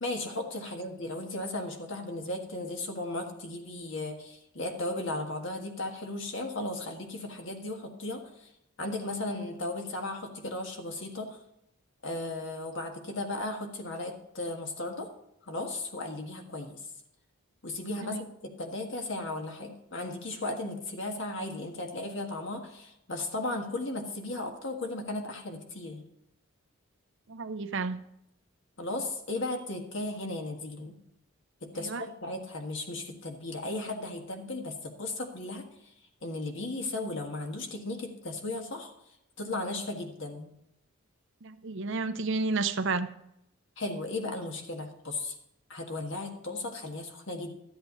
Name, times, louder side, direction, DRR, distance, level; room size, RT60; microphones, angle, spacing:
voice 1, 0.0-8.5 8.8-11.4 12.0-15.1 15.5-16.8 17.6-26.0 28.8-31.0 31.6-35.6 36.2-38.9 39.4-40.5 43.8-45.3 45.7-47.5, left 2 dB, 60° left, 3 dB, 1.6 m, -36 dB
voice 2, 27.3-28.0 31.7-32.0 41.4-43.1, right 3 dB, 55° right, 10 dB, 0.6 m, -31 dB
12.5 x 8.0 x 4.0 m, 0.80 s
head